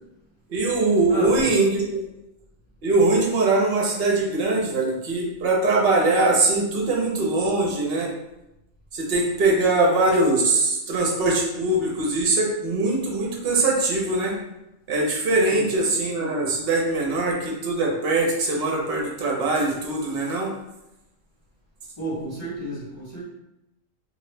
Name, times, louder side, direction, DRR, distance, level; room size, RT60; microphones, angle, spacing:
voice 1, 0.5-1.8 2.8-8.1 8.9-14.4 14.9-20.5, right 2 dB, 55° right, -1 dB, 0.9 m, -22 dB
voice 2, 1.1-1.5 15.5-15.7 22.0-23.2, right 1 dB, 20° left, -11 dB, 1.4 m, -32 dB
2.9 x 2.8 x 3.2 m, 0.92 s
omnidirectional pair, 1.3 m